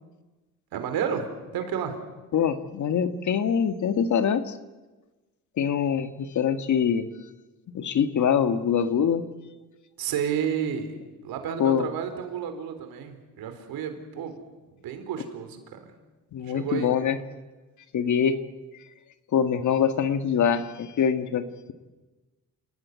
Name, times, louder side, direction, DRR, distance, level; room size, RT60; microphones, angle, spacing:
voice 1, 0.7-1.2 1.5-1.9 10.0-11.0 11.2-14.4 14.7-15.8 16.4-16.9, right 8 dB, 85° right, 8 dB, 4.4 m, -31 dB
voice 2, 2.3-4.5 5.6-7.1 7.7-9.3 11.6-11.9 16.3-17.2 17.9-18.4 19.3-21.7, left 7 dB, 55° left, 9 dB, 1.9 m, -24 dB
29.5 x 18.0 x 9.6 m, 1.2 s
cardioid pair, 125°, 35 cm